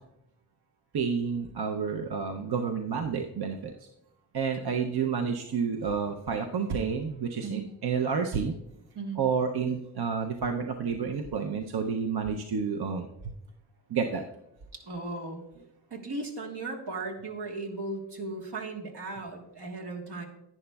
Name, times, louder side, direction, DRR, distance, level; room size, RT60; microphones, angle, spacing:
voice 1, 0.9-3.9 4.3-8.5 9.2-13.1 13.9-14.2, right 6 dB, 70° right, 4 dB, 0.6 m, -30 dB
voice 2, 7.4-7.7 8.9-9.2 14.7-15.4 15.9-20.3, right 3 dB, 85° right, 0 dB, 1.4 m, -37 dB
10.5 x 9.7 x 2.3 m, 0.85 s
wide cardioid pair, 65°, 40 cm